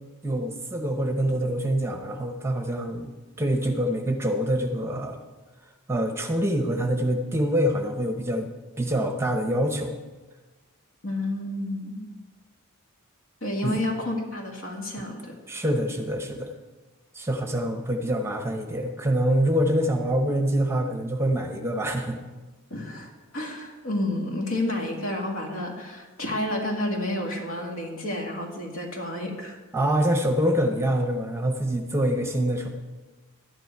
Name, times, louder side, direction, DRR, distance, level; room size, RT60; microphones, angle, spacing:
voice 1, 0.2-3.1 3.4-5.2 5.9-8.5 8.8-10.0 13.6-13.8 15.5-16.5 17.1-22.2 29.7-32.7, equal, 10° right, 5 dB, 0.8 m, -25 dB
voice 2, 11.0-12.1 13.4-15.3 22.7-29.6, left 1 dB, 70° left, 0 dB, 2.2 m, -30 dB
11.5 x 10.0 x 4.6 m, 1.3 s
head